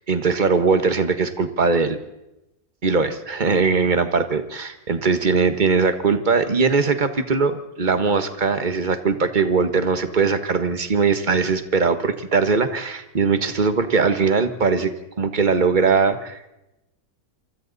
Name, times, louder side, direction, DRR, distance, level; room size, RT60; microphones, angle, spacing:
voice 1, 0.1-2.0 2.8-14.9 15.2-16.5, right 4 dB, 30° right, 9 dB, 1.4 m, -20 dB
28.5 x 24.5 x 4.1 m, 0.93 s
omnidirectional pair, 1.7 m